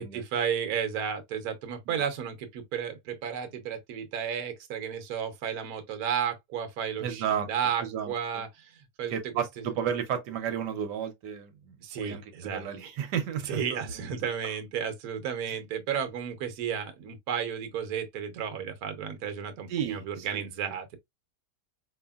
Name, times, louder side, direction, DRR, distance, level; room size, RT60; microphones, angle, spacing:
voice 1, 0.0-9.4 11.8-12.7 13.5-21.0, right 8 dB, 70° right, 1.2 m, -33 dB
voice 2, 7.0-7.5 7.8-8.4 9.1-14.1 19.7-20.5, right 8 dB, 85° right, 1.3 m, -33 dB
4.7 x 2.7 x 2.2 m
omnidirectional pair, 1.8 m